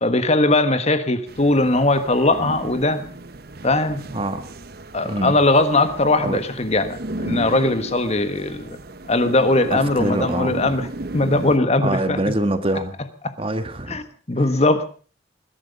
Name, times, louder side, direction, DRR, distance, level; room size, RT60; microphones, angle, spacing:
voice 1, 0.0-3.0 3.6-4.0 4.9-8.8 9.1-10.9 11.1-12.2 13.2-13.3 13.9-14.0 14.3-14.8, left 2 dB, 35° left, 10 dB, 1.3 m, -19 dB
sound 1, 1.3-11.6, right 2 dB, 55° right, 1.0 m, -34 dB
voice 2, 4.1-4.5 5.0-5.4 6.2-6.4 9.7-10.6 11.8-12.9 13.4-14.0, right 1 dB, 30° right, 9 dB, 1.6 m, -24 dB
21.0 x 12.0 x 5.4 m, 0.40 s
head